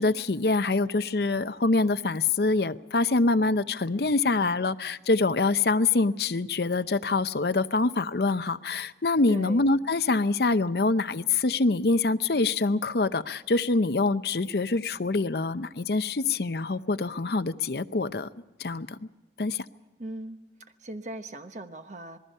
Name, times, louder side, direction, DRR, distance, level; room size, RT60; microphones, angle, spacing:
voice 1, 0.0-18.3 18.6-19.0 19.4-19.6, left 3 dB, 60° left, 13 dB, 0.7 m, -25 dB
voice 2, 9.3-9.6 20.0-20.4 20.8-22.2, right 1 dB, 40° right, 7 dB, 1.1 m, -38 dB
27.0 x 20.5 x 5.5 m, 1.1 s
head